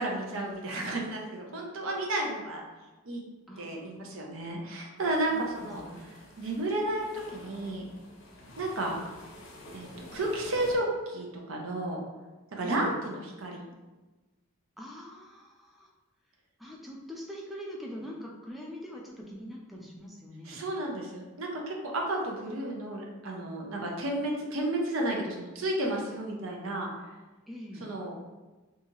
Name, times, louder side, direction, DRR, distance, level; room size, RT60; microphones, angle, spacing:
voice 1, 0.0-2.6 3.0-3.2 3.6-5.8 6.4-7.9 8.6-9.0 9.7-12.0 12.5-13.7 20.5-26.9 27.8-28.1, right 1 dB, 70° right, 0 dB, 0.5 m, -32 dB
voice 2, 3.5-4.2 5.3-6.0 12.6-13.0 14.8-15.9 16.6-20.6 27.5-27.9, equal, ahead, -2 dB, 0.3 m, -43 dB
sound 1, 5.0-10.8, left 1 dB, 65° left, 0.5 m, -49 dB
2.7 x 2.3 x 2.9 m, 1.2 s
head